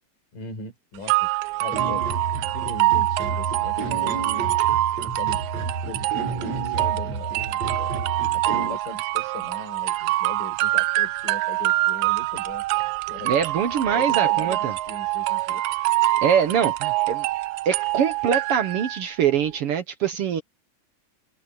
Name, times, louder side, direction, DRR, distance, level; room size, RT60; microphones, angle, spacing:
voice 1, 0.3-1.3 1.6-2.1 2.5-4.6 5.0-5.4 5.8-6.1 6.6-7.9 8.3-13.4 13.9-15.6, left 4 dB, 70° left, 7.0 m, -39 dB
sound 1, 1.1-19.0, right 17 dB, 90° right, 1.6 m, -25 dB
sound 2, 1.7-8.8, right 3 dB, 50° right, 8.1 m, -31 dB
voice 2, 13.2-14.7 16.2-17.3 17.6-20.4, right 8 dB, 70° right, 1.4 m, -23 dB
open air
omnidirectional pair, 4.0 m